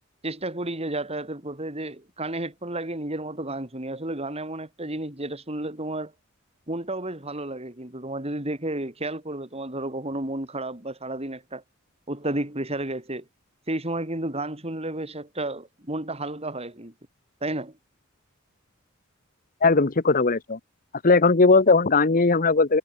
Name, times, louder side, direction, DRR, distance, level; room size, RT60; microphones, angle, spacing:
voice 1, 0.2-6.1 6.7-11.6 12.1-13.2 13.7-16.9 17.4-17.7, right 1 dB, 30° right, 4.5 m, -32 dB
voice 2, 19.6-20.6 21.0-22.8, left 3 dB, 40° left, 1.0 m, -18 dB
head